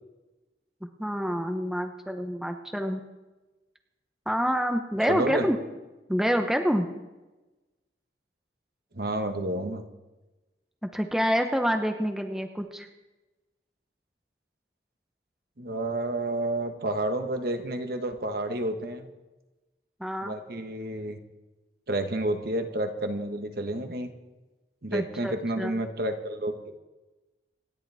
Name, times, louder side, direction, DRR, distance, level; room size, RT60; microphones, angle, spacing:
voice 1, 0.8-3.1 4.3-5.6 6.1-6.9 10.9-12.9 20.0-20.3 24.9-25.7, equal, 5° right, 5 dB, 0.8 m, -27 dB
voice 2, 5.1-5.5 8.9-9.8 15.6-19.1 20.2-21.2 21.9-24.1 24.8-26.8, right 1 dB, 60° right, 6 dB, 1.4 m, -30 dB
27.0 x 11.0 x 3.5 m, 1.1 s
head